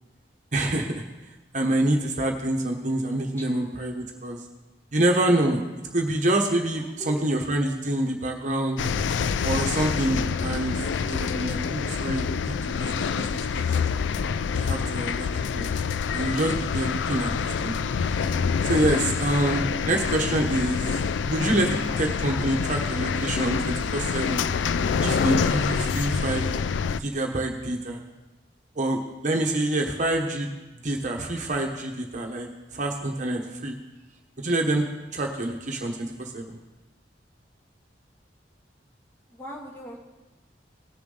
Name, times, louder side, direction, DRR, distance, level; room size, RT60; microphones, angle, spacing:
voice 1, 0.5-1.0 1.5-4.4 4.9-5.6 5.9-8.8 9.4-10.8 11.1-13.7 14.5-15.3 15.5-15.7 16.1-17.8 18.1-18.4 18.6-20.8 21.2-24.4 25.0-26.5 27.0-28.0 28.8-30.5 30.8-33.7 34.4-34.8 35.1-36.6, right 1 dB, 45° right, 1 dB, 1.1 m, -26 dB
voice 2, 6.7-7.2 39.3-40.0, equal, 15° left, -2 dB, 2.0 m, -40 dB
sound 1, 8.8-27.0, left 6 dB, 85° left, 0.4 m, -26 dB
18.5 x 6.9 x 3.9 m, 1.1 s
head